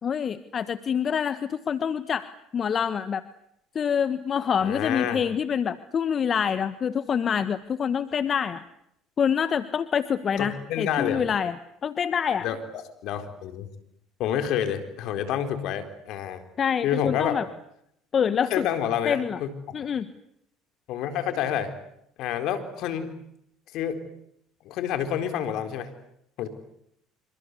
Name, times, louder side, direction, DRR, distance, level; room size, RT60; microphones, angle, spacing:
voice 1, 0.0-2.3 2.5-3.2 3.7-8.6 9.2-11.6 11.8-12.5 16.6-17.5 18.1-18.7 19.0-19.4 19.7-20.1, left 7 dB, 45° left, 12 dB, 1.4 m, -26 dB
voice 2, 4.6-5.2 10.4-11.2 12.4-13.7 14.2-16.4 16.8-17.4 18.5-19.7 20.9-21.7 22.2-23.1 23.7-24.0 24.6-25.9 26.4-26.5, left 9 dB, 65° left, 8 dB, 4.1 m, -28 dB
27.0 x 26.0 x 8.3 m, 0.77 s
hypercardioid pair, 70°, 0 cm